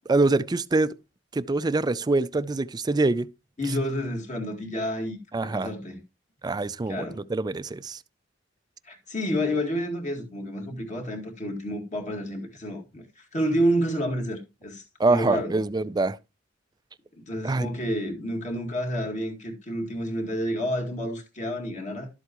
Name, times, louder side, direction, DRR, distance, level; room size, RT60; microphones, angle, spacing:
voice 1, 0.1-1.0 1.3-3.3 5.3-5.7 6.4-8.0 15.0-16.2 17.4-17.7, right 3 dB, 20° right, 0.4 m, -24 dB
voice 2, 3.6-5.2 5.4-6.0 6.9-7.2 8.8-14.8 15.1-15.5 17.1-22.1, equal, 40° left, 2.1 m, -29 dB
12.0 x 8.0 x 3.0 m
head